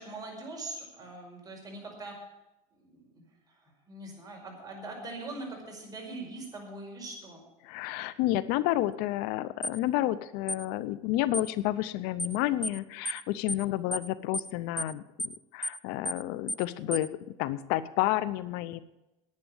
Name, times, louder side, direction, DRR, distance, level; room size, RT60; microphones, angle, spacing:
voice 1, 0.0-2.2 2.7-7.4, right 2 dB, 25° right, 0 dB, 5.3 m, -42 dB
voice 2, 7.6-17.1 17.4-18.8, left 15 dB, 75° left, 16 dB, 0.7 m, -30 dB
sound 1, 9.6-9.8 10.5-10.6 11.3-11.5 12.2-12.4 12.6-12.8 13.0-13.2 13.5-13.6 13.9-14.1 14.3-14.5 14.8-14.9 15.2-15.4 15.6-15.8 16.0-16.2 16.5-16.6 16.9-17.1, equal, ahead, 0.4 m, -33 dB
10.5 x 9.3 x 8.8 m, 0.96 s
supercardioid pair, 110°, 16 cm